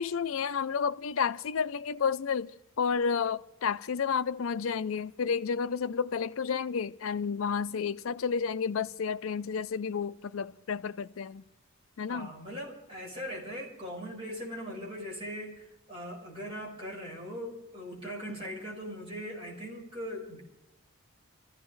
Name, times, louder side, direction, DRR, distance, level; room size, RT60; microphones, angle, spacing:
voice 1, 0.0-11.4 12.0-12.3, left 6 dB, 70° left, 0.4 m, -31 dB
voice 2, 12.1-20.4, equal, 25° right, 4.9 m, -40 dB
26.5 x 15.0 x 3.2 m
head